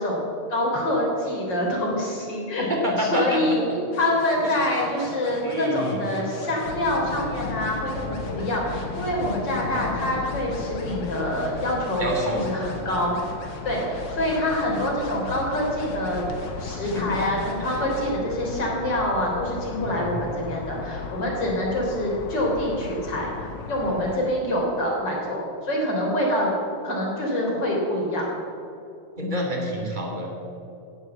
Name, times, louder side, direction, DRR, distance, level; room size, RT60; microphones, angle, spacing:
voice 1, 0.0-2.7 3.0-13.1 13.4-16.2 16.6-26.5 26.8-28.3, left 1 dB, 35° left, -2 dB, 3.8 m, -26 dB
voice 2, 2.6-3.6 4.4-4.7 5.4-6.0 12.0-12.4 16.9-17.2 19.8-20.1 29.2-30.3, equal, 15° right, -1 dB, 2.5 m, -27 dB
sound 1, 3.9-18.1, left 2 dB, 50° left, 2.7 m, -41 dB
sound 2, 6.6-24.2, left 5 dB, 75° left, 1.2 m, -36 dB
16.5 x 8.3 x 7.9 m, 2.7 s
omnidirectional pair, 3.5 m